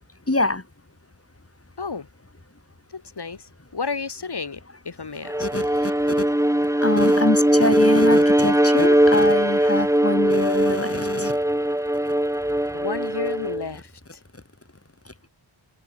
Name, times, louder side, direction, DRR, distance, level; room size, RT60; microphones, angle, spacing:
voice 1, 0.3-0.6 5.4-6.3 6.8-11.4 15.1-15.3, left 2 dB, 30° left, 7.0 m, -25 dB
voice 2, 2.9-5.5 12.7-14.2, left 4 dB, 55° left, 2.2 m, -32 dB
Bowed string instrument, 5.3-13.6, right 1 dB, 5° right, 2.0 m, -20 dB
wide cardioid pair, 65°, 46 cm